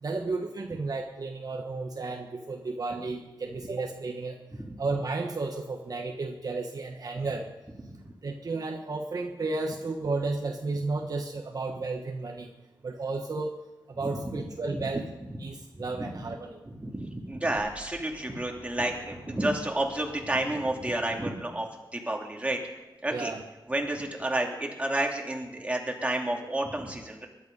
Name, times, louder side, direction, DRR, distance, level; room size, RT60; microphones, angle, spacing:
voice 1, 0.0-4.4 4.8-7.5 8.2-12.5 12.8-13.6 13.9-15.1 15.4-16.6 23.1-23.4, right 3 dB, 50° right, 2 dB, 1.3 m, -33 dB
voice 2, 14.1-14.4 14.7-15.0 16.0-16.3 16.6-21.7 21.9-22.6 23.0-23.3 23.7-27.3, right 1 dB, 15° right, 0 dB, 2.7 m, -30 dB
sound 1, 17.6-20.8, left 1 dB, 70° left, 4.4 m, -50 dB
21.5 x 11.5 x 5.4 m, 1.0 s
wide cardioid pair, 105°, 8 cm